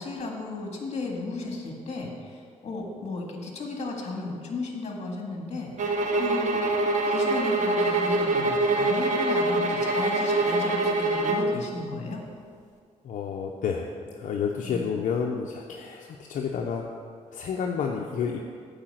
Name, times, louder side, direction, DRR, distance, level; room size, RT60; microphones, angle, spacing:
voice 1, 0.0-6.6 7.1-12.2 14.6-14.9, left 3 dB, 55° left, 1 dB, 1.8 m, -34 dB
sound 1, 5.8-11.5, right 2 dB, 70° right, 0.9 m, -24 dB
voice 2, 13.0-16.8 17.3-18.4, left 6 dB, 80° left, 0 dB, 0.6 m, -30 dB
8.9 x 4.9 x 7.7 m, 2.2 s
cardioid pair, 95°, 13 cm